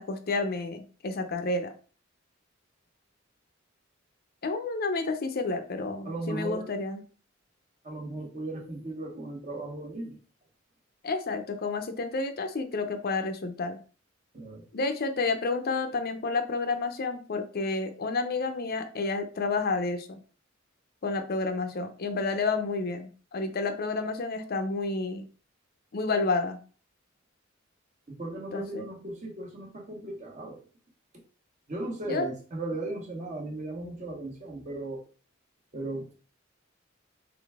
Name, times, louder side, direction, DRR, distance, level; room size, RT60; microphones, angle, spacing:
voice 1, 0.0-1.7 4.4-7.0 11.0-13.8 14.7-20.2 21.0-25.3 25.9-26.6 28.5-28.8 32.1-32.3, left 3 dB, 50° left, 7 dB, 0.6 m, -30 dB
voice 2, 6.0-6.7 7.8-10.2 14.3-14.6 28.1-30.6 31.7-35.0 35.7-36.1, right 2 dB, 35° right, 1 dB, 1.2 m, -36 dB
3.9 x 3.4 x 3.5 m, 0.38 s
head